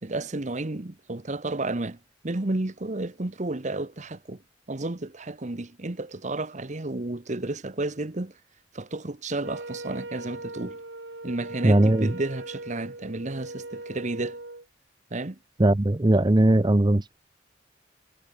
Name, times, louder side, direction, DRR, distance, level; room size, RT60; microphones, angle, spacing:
voice 1, 0.0-2.0 2.2-4.4 4.7-8.3 8.7-10.8 11.2-14.4 15.1-15.4, right 2 dB, 40° right, 1.1 m, -32 dB
Wind instrument woodwind instrument, 9.4-14.7, right 2 dB, 70° right, 3.6 m, -39 dB
voice 2, 11.6-12.1 15.6-17.2, right 1 dB, 25° right, 0.7 m, -19 dB
head